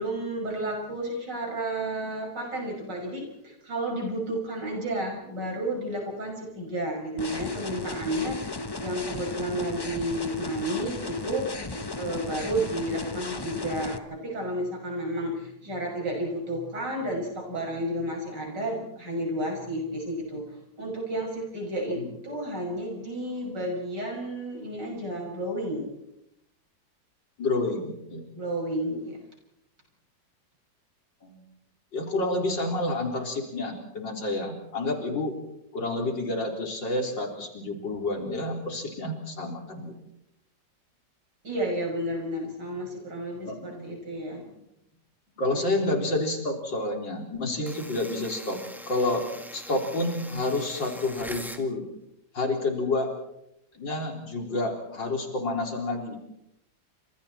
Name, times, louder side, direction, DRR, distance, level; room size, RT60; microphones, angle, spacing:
voice 1, 0.0-11.5 12.0-25.9 28.3-29.2 41.4-44.4 45.5-45.6, right 1 dB, 65° right, 0 dB, 7.1 m, -32 dB
sound 1, 7.2-14.0, left 2 dB, 20° left, 0.7 m, -35 dB
voice 2, 27.4-28.3 31.2-31.4 31.9-35.3 35.7-39.9 43.5-43.9 45.4-48.6 48.9-49.2 49.5-51.8 52.3-53.1 53.7-56.2, left 2 dB, 75° left, 2 dB, 4.5 m, -29 dB
sound 2, 47.7-51.7, equal, ahead, 1.8 m, -43 dB
29.5 x 26.5 x 4.4 m, 0.82 s
omnidirectional pair, 2.0 m